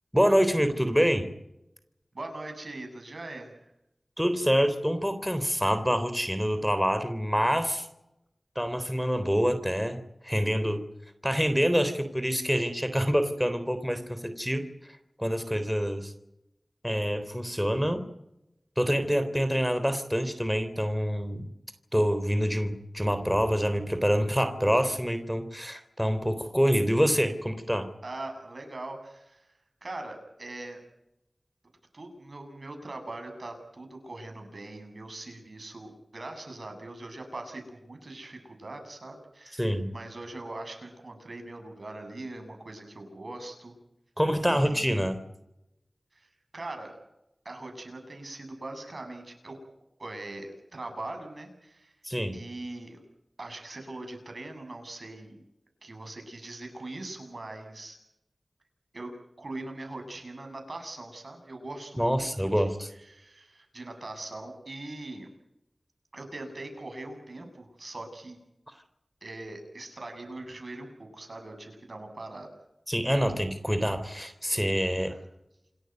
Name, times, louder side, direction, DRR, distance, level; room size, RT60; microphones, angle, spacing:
voice 1, 0.1-1.3 4.2-7.9 8.6-10.0 10.2-10.8 11.2-14.6 15.2-16.1 16.8-18.0 18.8-21.4 21.9-27.9 39.5-39.9 44.2-45.2 52.0-52.4 62.0-62.9 72.9-75.2, equal, ahead, 10 dB, 3.6 m, -26 dB
voice 2, 2.1-3.7 28.0-29.5 29.8-30.8 31.9-43.7 44.5-45.0 46.1-47.0 47.4-49.6 50.0-51.9 52.3-53.0 53.4-55.4 55.8-58.0 58.9-65.3 66.1-68.4 69.2-72.5 75.1-75.2, right 2 dB, 65° right, 5 dB, 7.9 m, -41 dB
28.0 x 14.0 x 9.6 m, 0.84 s
wide cardioid pair, 45°, 0 cm